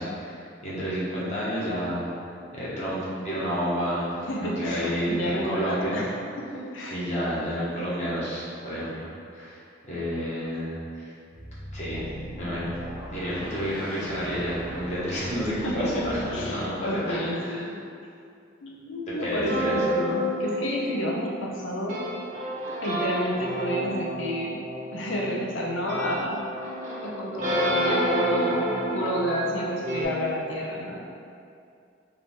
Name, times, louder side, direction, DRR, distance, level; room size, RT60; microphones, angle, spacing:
voice 1, 0.0-2.1 2.5-4.1 4.4-6.0 6.9-9.6 9.8-11.1 11.7-12.1 12.4-12.7 13.1-17.6 19.2-19.8, equal, 40° left, -8 dB, 1.2 m, -30 dB
voice 2, 4.2-7.0 15.6-17.7 18.6-22.0 22.8-24.6 24.9-26.4 27.0-31.0, equal, 85° left, -2 dB, 0.7 m, -30 dB
sound 1, 11.3-16.6, equal, 25° right, 0.6 m, -39 dB
sound 2, 19.5-30.0, equal, 45° right, 1.0 m, -29 dB
4.6 x 2.7 x 3.6 m, 2.4 s
head